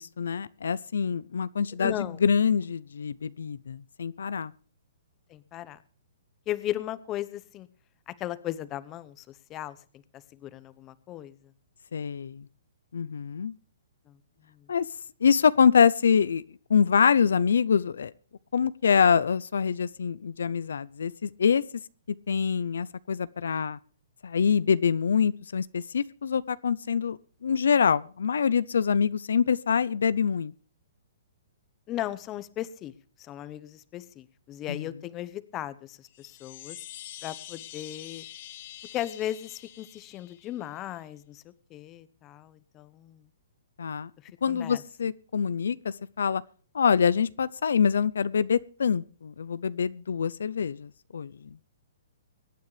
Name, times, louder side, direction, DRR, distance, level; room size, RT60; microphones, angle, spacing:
voice 1, 0.0-4.5 11.9-12.4 12.9-13.5 14.7-14.8 15.2-16.4 16.7-18.1 18.5-21.6 22.3-23.8 24.2-30.5 34.7-34.9 43.8-44.1 44.4-46.4 46.7-51.3, left 6 dB, 80° left, 0.5 m, -25 dB
voice 2, 1.8-2.2 5.3-5.8 6.5-7.7 8.1-9.8 10.4-11.3 14.1-14.2 14.5-14.6 31.9-32.9 33.2-36.8 37.2-38.2 38.9-43.2 44.5-44.8, left 13 dB, 25° left, 0.9 m, -36 dB
Chime, 36.1-40.8, left 14 dB, 45° left, 1.2 m, -45 dB
24.0 x 9.4 x 3.2 m
hypercardioid pair, 150°, 0 cm